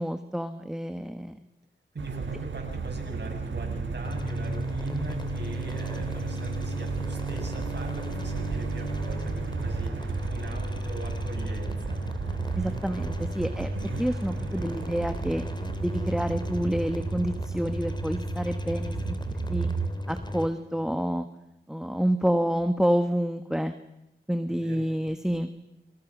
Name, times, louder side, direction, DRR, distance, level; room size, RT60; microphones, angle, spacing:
voice 1, 0.0-1.4 12.6-13.7 14.0-15.4 15.8-19.2 19.5-19.7 20.1-21.3 21.7-23.7 24.3-25.5, equal, 5° right, 9 dB, 1.3 m, -28 dB
voice 2, 1.9-12.0 14.3-15.0 24.5-24.9, right 3 dB, 65° right, 2 dB, 7.3 m, -40 dB
sound 1, 2.0-19.9, right 5 dB, 85° right, 1.4 m, -34 dB
sound 2, 4.0-20.5, left 1 dB, 25° left, 3.1 m, -35 dB
28.5 x 25.0 x 6.1 m, 0.91 s
cardioid pair, 45°, 19 cm